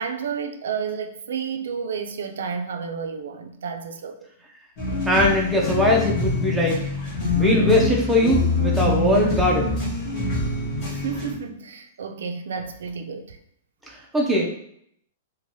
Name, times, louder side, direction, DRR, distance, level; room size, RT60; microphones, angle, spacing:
voice 1, 0.0-4.3 7.2-7.3 10.8-13.4, right 6 dB, 90° right, 6 dB, 0.3 m, -31 dB
sound 1, 4.8-11.3, left 2 dB, 25° left, 1.0 m, -25 dB
voice 2, 5.0-6.8 7.3-9.8 13.9-14.5, left 1 dB, 5° right, -3 dB, 0.4 m, -20 dB
3.1 x 2.1 x 2.6 m, 0.71 s
supercardioid pair, 165°, 0 cm